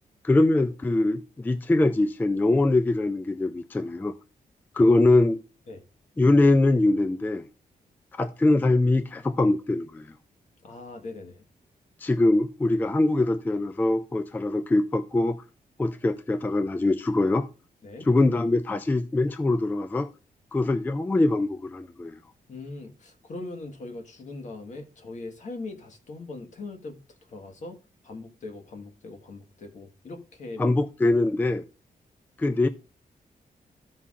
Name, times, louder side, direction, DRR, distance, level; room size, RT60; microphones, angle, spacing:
voice 1, 0.2-4.1 4.7-5.4 6.2-7.5 8.2-10.1 12.0-15.4 15.8-17.5 18.1-20.1 20.5-22.2 30.6-31.6 32.4-32.7, left 2 dB, 10° left, 0.4 m, -23 dB
voice 2, 10.6-11.4 17.8-18.1 22.5-27.8 28.0-30.7, left 3 dB, 55° left, 1.4 m, -40 dB
14.5 x 5.6 x 2.4 m
wide cardioid pair, 145°, 15 cm